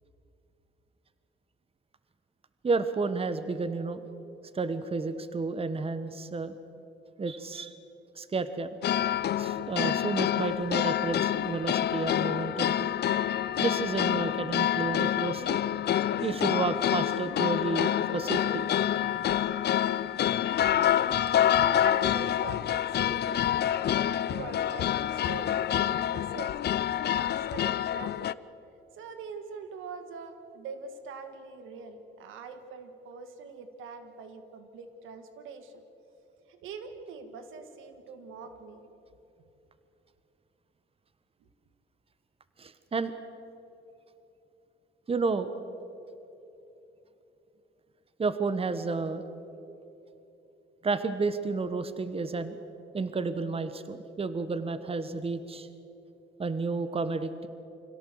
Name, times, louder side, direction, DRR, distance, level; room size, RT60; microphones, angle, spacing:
voice 1, 2.6-4.0 4.5-6.5 7.2-7.8 8.1-8.7 9.4-12.9 13.6-15.6 16.2-18.6 42.6-43.1 45.1-45.5 48.2-49.2 50.8-52.6 52.9-55.7 56.4-57.5, right 4 dB, 30° right, 12 dB, 1.2 m, -31 dB
sound 1, 8.8-28.3, left 11 dB, 55° left, 0.6 m, -27 dB
voice 2, 21.8-23.7 24.0-28.4 28.9-35.8 36.5-38.9, right 5 dB, 85° right, 8 dB, 2.0 m, -43 dB
25.5 x 17.0 x 7.8 m, 3.0 s
cardioid pair, 90°, 20 cm